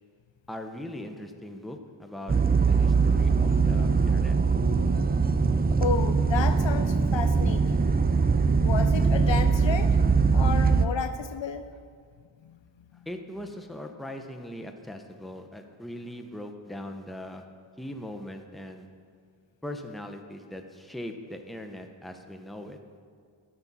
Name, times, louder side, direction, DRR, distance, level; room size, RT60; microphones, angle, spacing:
voice 1, 0.5-4.4 13.1-17.4 17.8-18.9 19.6-22.8, left 1 dB, ahead, 5 dB, 0.7 m, -40 dB
sound 1, 2.3-10.9, right 4 dB, 20° right, 0.3 m, -22 dB
voice 2, 5.8-7.8 8.6-10.0 10.3-11.7 12.4-12.6 12.9-13.0, left 6 dB, 65° left, 9 dB, 0.6 m, -32 dB
11.5 x 7.0 x 4.1 m, 2.1 s
wide cardioid pair, 55°, 49 cm